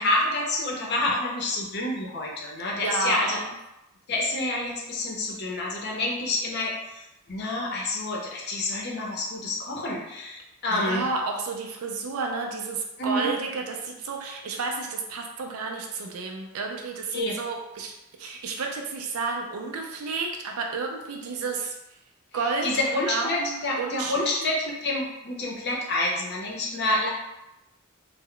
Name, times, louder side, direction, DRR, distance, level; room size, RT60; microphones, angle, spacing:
voice 1, 0.0-3.4 4.1-11.0 13.0-13.3 17.1-17.4 22.4-27.1, left 2 dB, 50° left, -2 dB, 0.6 m, -28 dB
voice 2, 2.8-3.4 10.7-17.9 18.2-21.7 22.3-22.7 23.1-24.3, right 4 dB, 85° right, 2 dB, 0.4 m, -31 dB
2.2 x 2.0 x 3.6 m, 0.92 s
head